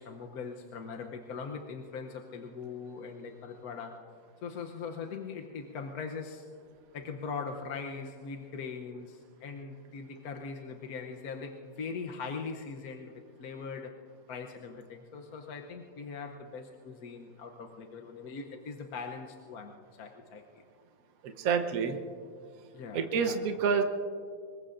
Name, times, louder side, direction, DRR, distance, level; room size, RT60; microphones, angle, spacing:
voice 1, 0.0-4.0 4.4-6.5 6.9-13.9 14.3-20.6 22.7-23.4, left 5 dB, 60° left, 3 dB, 1.2 m, -41 dB
voice 2, 21.2-22.0 22.9-23.8, right 6 dB, 55° right, 6 dB, 1.3 m, -28 dB
25.5 x 21.5 x 2.6 m, 2.2 s
omnidirectional pair, 2.0 m